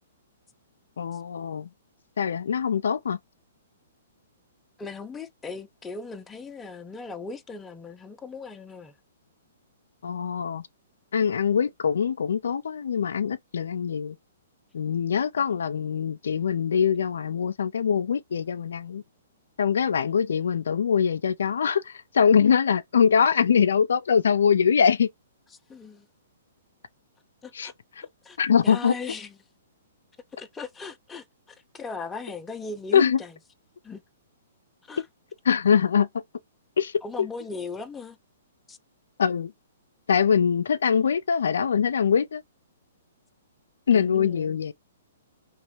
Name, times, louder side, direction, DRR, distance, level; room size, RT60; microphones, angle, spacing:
voice 1, 1.0-1.7 2.2-3.2 10.0-10.6 11.1-14.2 14.7-19.0 19.6-25.1 27.5-28.1 28.4-29.0 32.9-33.2 35.5-36.1 36.8-37.0 39.2-39.5 40.1-42.4 43.9-44.7, left 7 dB, 75° left, 0.3 m, -23 dB
voice 2, 4.8-9.0 25.7-26.1 27.4-27.7 28.2-28.4 28.6-29.4 30.3-33.3 33.8-34.0 34.9-35.1 37.0-38.2 38.7-38.8 43.9-44.6, left 4 dB, 10° left, 0.5 m, -38 dB
3.3 x 2.9 x 3.1 m
hypercardioid pair, 135°, 0 cm